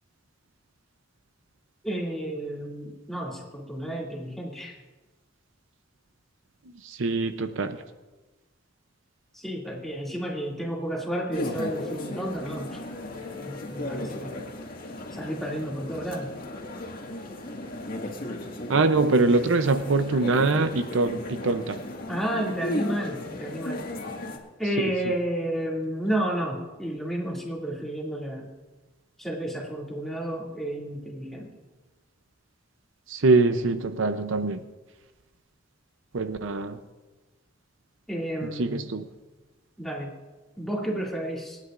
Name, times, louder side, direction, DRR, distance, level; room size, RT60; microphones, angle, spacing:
voice 1, 1.8-4.7 9.3-12.8 13.4-14.4 15.1-16.3 22.1-23.8 24.6-28.5 29.2-31.5 38.1-38.9 39.8-40.1 40.6-41.6, right 1 dB, ahead, -3 dB, 2.4 m, -31 dB
voice 2, 6.8-7.8 18.7-21.8 24.8-24.9 33.1-34.6 36.1-36.8 38.4-39.1, right 3 dB, 70° right, 9 dB, 0.6 m, -23 dB
sound 1, 11.3-24.4, left 1 dB, 45° left, 1.8 m, -35 dB
27.0 x 9.7 x 2.5 m, 1.2 s
head